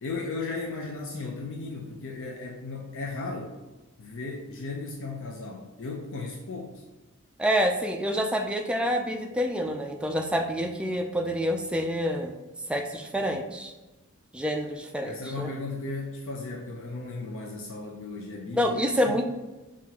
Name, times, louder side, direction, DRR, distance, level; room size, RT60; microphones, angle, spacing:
voice 1, 0.0-3.6 4.0-6.8 15.0-18.7 19.1-19.2, left 3 dB, 60° left, 0 dB, 0.5 m, -36 dB
voice 2, 7.4-12.4 12.7-13.7 14.3-15.5 18.6-19.2, equal, 5° right, 3 dB, 0.3 m, -27 dB
5.6 x 2.5 x 2.8 m, 1.1 s
head